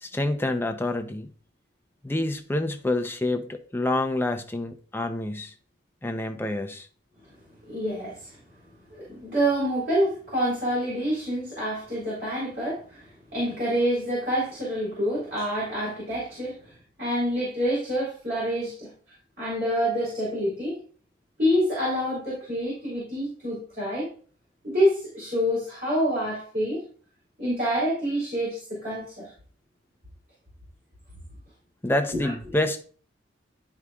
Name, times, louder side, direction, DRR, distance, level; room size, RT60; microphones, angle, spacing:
voice 1, 0.0-1.3 2.0-5.5 6.0-6.9 31.8-32.8, left 1 dB, 10° left, 0.6 m, -27 dB
voice 2, 7.7-8.4 8.9-16.6 17.0-18.9 19.4-20.8 21.4-24.1 24.6-26.8 27.4-29.3 32.2-32.3, equal, 50° right, 3.6 m, -27 dB
11.0 x 4.8 x 2.4 m
head